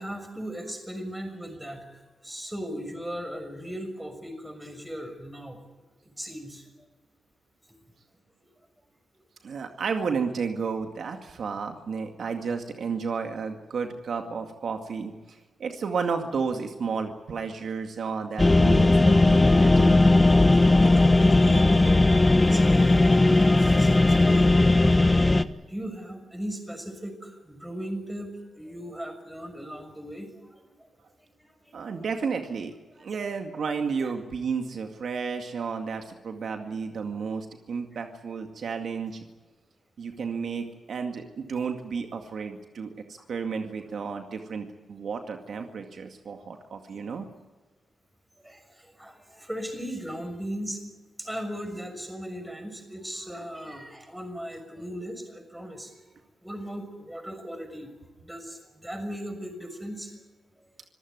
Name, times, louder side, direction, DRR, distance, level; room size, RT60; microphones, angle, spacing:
voice 1, 0.0-5.6 6.2-6.7 8.4-8.5 20.5-22.0 22.4-25.4 25.7-30.9 31.6-32.0 32.9-33.1 34.0-34.1 43.2-43.3 48.4-50.9 51.2-56.1 56.4-57.9 58.2-60.1 60.6-60.7, equal, 5° right, 6 dB, 6.3 m, -38 dB
voice 2, 9.4-20.0 31.7-32.7 33.0-39.2 40.0-47.3, right 5 dB, 70° right, 5 dB, 2.1 m, -32 dB
sound 1, 18.4-25.4, left 2 dB, 20° left, 1.1 m, -18 dB
26.0 x 15.5 x 9.5 m, 1.2 s
cardioid pair, 85°, 0 cm